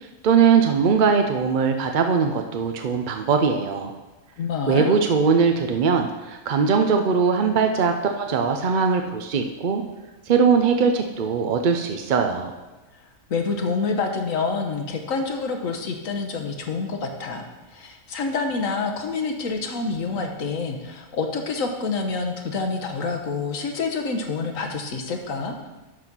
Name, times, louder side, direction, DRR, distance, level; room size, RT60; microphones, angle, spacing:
voice 1, 0.2-3.9 4.7-9.8 10.3-12.5, right 5 dB, 55° right, 5 dB, 0.6 m, -20 dB
voice 2, 4.4-4.9 13.3-25.7, left 4 dB, 75° left, 4 dB, 1.4 m, -27 dB
11.5 x 4.1 x 6.0 m, 1.1 s
omnidirectional pair, 1.4 m